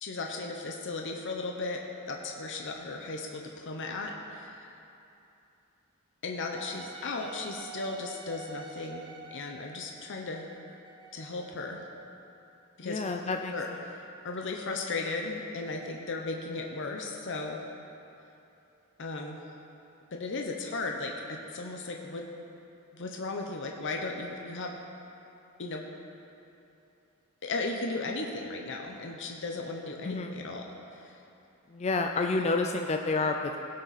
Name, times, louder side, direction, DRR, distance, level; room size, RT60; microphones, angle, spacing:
voice 1, 0.0-4.7 6.2-10.5 11.1-11.8 12.8-13.0 13.5-17.6 19.0-19.4 20.1-22.3 22.9-24.8 25.6-25.8 27.4-31.1, left 3 dB, 60° left, 1 dB, 0.8 m, -36 dB
Wind instrument woodwind instrument, 6.5-12.2, right 4 dB, 20° right, 0.7 m, -48 dB
voice 2, 12.8-13.8 30.0-30.3 31.7-33.6, left 3 dB, 30° left, 4 dB, 0.4 m, -29 dB
17.0 x 6.5 x 4.1 m, 2.8 s
head